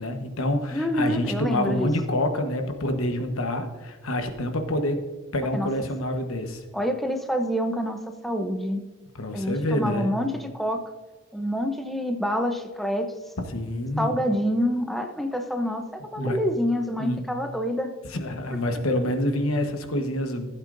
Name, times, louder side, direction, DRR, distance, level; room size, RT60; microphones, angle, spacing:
voice 1, 0.0-5.0 5.3-6.6 9.1-10.1 13.5-14.2 16.2-16.4 17.0-17.2 18.1-20.5, left 1 dB, 70° left, 6 dB, 1.2 m, -27 dB
voice 2, 0.7-1.9 5.5-5.7 6.7-8.8 9.3-10.8 11.3-13.1 14.0-17.9, equal, ahead, 4 dB, 0.7 m, -27 dB
15.0 x 8.1 x 2.6 m, 1.3 s
head